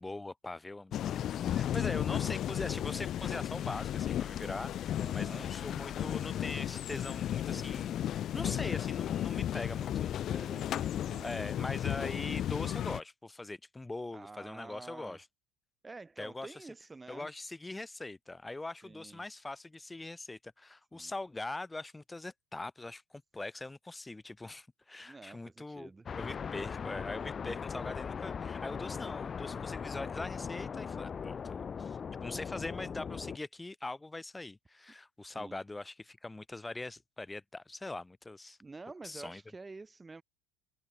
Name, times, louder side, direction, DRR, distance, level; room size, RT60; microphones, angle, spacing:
voice 1, 0.0-10.3 11.2-15.2 16.2-16.7 17.1-25.9 26.2-38.6 39.0-39.4, left 2 dB, 10° left, 7.3 m, -42 dB
sound 1, 0.9-13.0, left 11 dB, 45° left, 0.9 m, -34 dB
voice 2, 1.4-2.0 5.0-5.5 10.0-11.3 14.1-15.2 15.8-17.3 18.8-19.2 20.9-21.1 25.0-26.1 35.3-35.6 38.6-40.2, right 3 dB, 15° right, 3.0 m, -49 dB
sound 2, 26.1-33.4, left 6 dB, 30° left, 1.4 m, -39 dB
hypercardioid pair, 80°, 0 cm